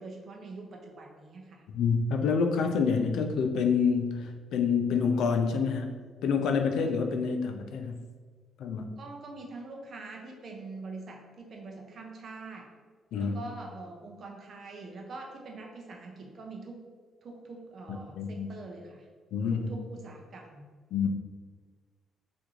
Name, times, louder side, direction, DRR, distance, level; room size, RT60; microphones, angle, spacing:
voice 1, 0.0-1.6 9.0-12.7 13.1-16.8 17.2-19.0 19.5-20.7, right 3 dB, 55° right, 1 dB, 0.5 m, -44 dB
voice 2, 1.7-5.9 6.2-8.0 8.6-8.9 13.1-13.4 17.9-18.5 19.3-19.7 20.9-21.1, left 5 dB, 80° left, 5 dB, 0.3 m, -27 dB
3.0 x 2.5 x 3.5 m, 1.5 s
cardioid pair, 90°, 0 cm